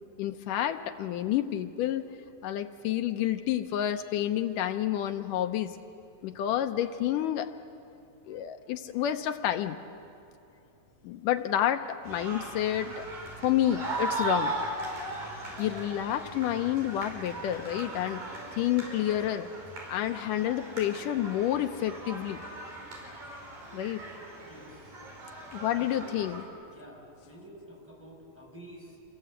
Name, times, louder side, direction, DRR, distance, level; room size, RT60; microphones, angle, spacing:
voice 1, 0.2-2.1 2.4-5.7 6.2-7.5 8.3-9.8 11.0-13.1 13.4-14.5 15.6-18.2 18.5-19.5 19.9-22.4 23.7-24.0 25.5-26.4, left 11 dB, 75° left, 8 dB, 2.2 m, -29 dB
sound 1, 12.0-26.4, right 2 dB, 70° right, 7.0 m, -38 dB
voice 2, 24.4-24.9 25.7-26.2 26.7-29.0, equal, 5° right, -3 dB, 6.6 m, -49 dB
28.5 x 23.0 x 8.0 m, 2.6 s
omnidirectional pair, 4.1 m